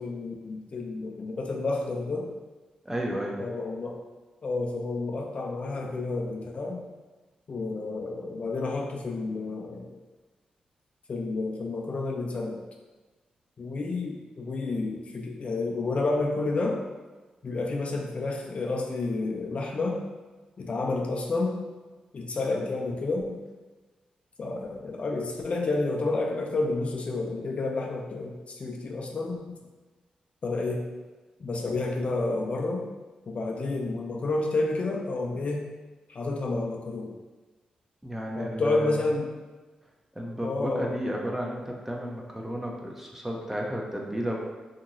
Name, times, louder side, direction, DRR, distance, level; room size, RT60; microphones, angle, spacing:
voice 1, 0.0-2.3 3.4-4.0 4.4-6.8 7.5-9.9 11.1-12.6 13.6-16.8 17.4-20.0 20.6-21.6 22.1-23.4 24.4-29.6 30.4-30.8 31.4-32.9 33.3-35.7 36.1-37.1 38.4-39.3 40.4-41.0, left 3 dB, 50° left, 1 dB, 0.4 m, -30 dB
voice 2, 2.8-3.4 22.5-22.7 38.0-39.0 40.1-44.4, equal, 10° right, -1 dB, 0.6 m, -33 dB
2.8 x 2.7 x 2.6 m, 1.2 s
cardioid pair, 60°, 3 cm